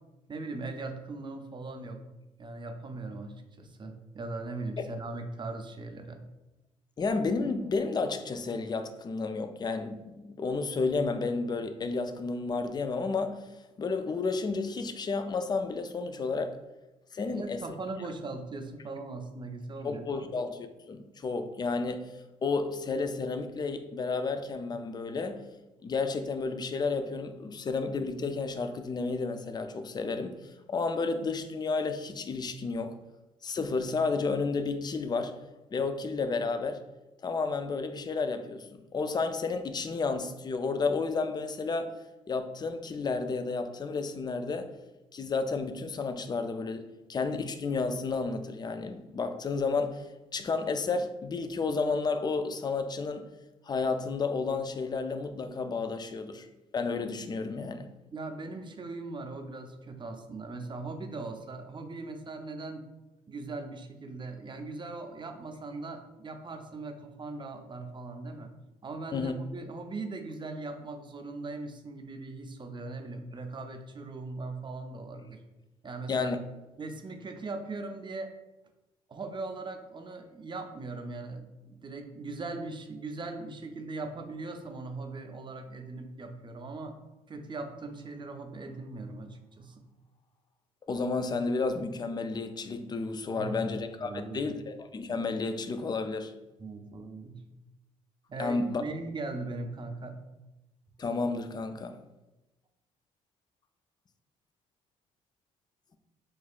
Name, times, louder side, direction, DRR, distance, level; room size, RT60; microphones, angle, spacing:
voice 1, 0.3-2.0 2.4-6.2 17.2-20.3 58.1-62.9 63.3-68.5 68.8-75.4 75.8-76.3 76.8-78.3 79.1-86.9 87.3-89.8 93.3-93.7 94.0-94.5 96.6-97.5 98.3-100.2, right 3 dB, 30° right, 0.5 m, -39 dB
voice 2, 7.0-13.5 13.8-16.6 17.1-17.6 19.8-22.1 22.4-25.5 25.8-33.0 33.4-35.4 35.7-36.8 37.2-42.0 42.3-44.8 45.1-50.1 50.3-53.3 53.7-56.5 56.7-57.9 69.1-69.3 76.1-76.4 90.9-96.3 98.4-98.8 101.0-102.0, left 4 dB, 25° left, 0.4 m, -31 dB
4.3 x 2.3 x 2.3 m
hypercardioid pair, 50°, 16 cm